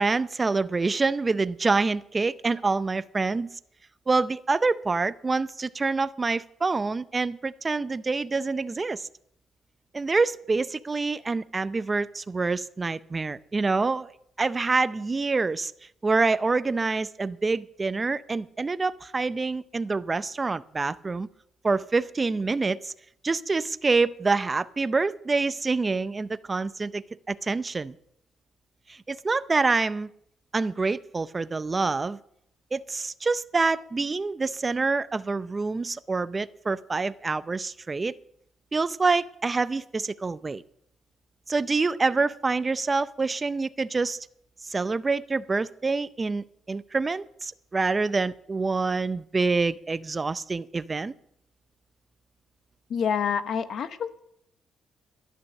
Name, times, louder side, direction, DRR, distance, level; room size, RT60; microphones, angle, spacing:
voice 1, 0.0-3.6 4.1-9.1 9.9-14.1 14.4-15.7 16.0-21.3 21.6-22.9 23.2-27.9 28.9-30.1 30.5-32.2 32.7-38.2 38.7-40.6 41.5-44.3 44.6-51.1, right 3 dB, 25° right, 0.5 m, -26 dB
voice 2, 52.9-54.2, left 7 dB, 65° left, 1.0 m, -27 dB
12.0 x 11.0 x 6.4 m
cardioid pair, 90°, 0 cm